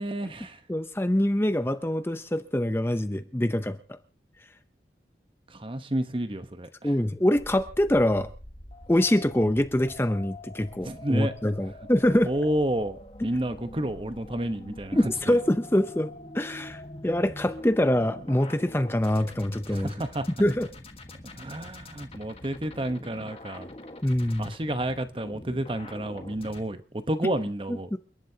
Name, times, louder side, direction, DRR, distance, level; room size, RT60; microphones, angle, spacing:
voice 1, 0.0-0.6 5.5-6.9 10.8-11.3 12.3-15.4 19.7-20.3 21.2-23.7 24.4-27.9, right 1 dB, 30° right, 1.0 m, -30 dB
voice 2, 0.7-4.0 6.8-8.3 8.9-12.3 14.9-19.9 20.3-20.7 24.0-24.5 27.9-28.0, left 1 dB, 15° left, 0.7 m, -25 dB
sound 1, 7.3-26.6, left 1 dB, 30° left, 1.5 m, -44 dB
29.0 x 11.5 x 2.8 m
head